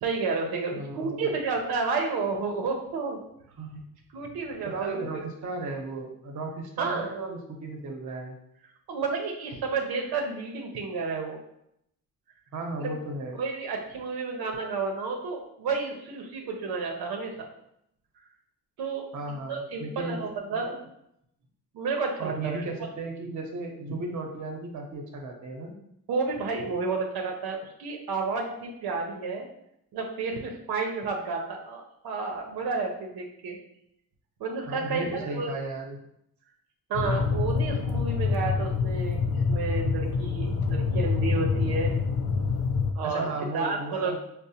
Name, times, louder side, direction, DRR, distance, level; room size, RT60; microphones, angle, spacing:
voice 1, 0.0-3.2 4.1-5.2 6.8-7.1 8.9-11.4 12.8-12.9 13.4-17.3 18.8-19.1 19.5-20.8 21.7-22.6 26.1-29.5 29.9-33.6 34.4-35.5 36.9-39.2 39.5-41.9 42.2-42.4 43.0-44.2, right 4 dB, 90° right, 1 dB, 0.6 m, -31 dB
voice 2, 0.7-1.3 3.6-3.8 4.6-8.4 12.5-13.4 19.1-20.3 20.5-20.6 22.2-25.7 34.7-36.0 43.0-44.2, right 2 dB, 50° right, 2 dB, 0.8 m, -35 dB
sound 1, 36.9-42.9, left 5 dB, 55° left, 0.4 m, -26 dB
4.7 x 2.1 x 2.7 m, 0.76 s
cardioid pair, 105°, 36 cm